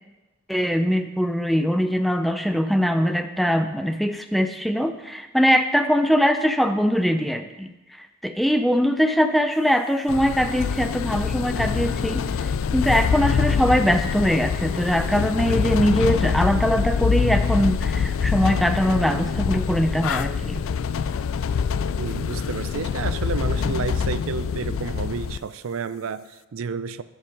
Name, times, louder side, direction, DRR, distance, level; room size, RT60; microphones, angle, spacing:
voice 1, 0.5-7.7 8.0-20.6, equal, ahead, 8 dB, 0.4 m, -22 dB
sound 1, 10.1-25.4, left 6 dB, 70° left, 0.3 m, -25 dB
voice 2, 22.0-27.0, right 6 dB, 70° right, 15 dB, 0.4 m, -31 dB
10.5 x 5.5 x 5.3 m, 1.1 s
head